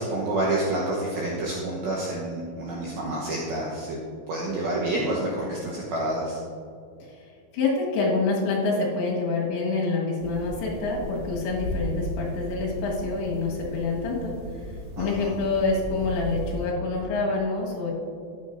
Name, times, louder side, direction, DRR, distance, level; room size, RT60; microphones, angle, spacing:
voice 1, 0.0-4.0 4.3-6.4 15.0-15.3, right 1 dB, 75° right, -4 dB, 2.3 m, -28 dB
voice 2, 7.5-14.4 15.0-17.9, left 3 dB, 70° left, -3 dB, 3.8 m, -26 dB
sound 1, 10.2-16.7, right 1 dB, 35° right, 1.0 m, -35 dB
13.5 x 9.8 x 2.6 m, 2.4 s
omnidirectional pair, 5.8 m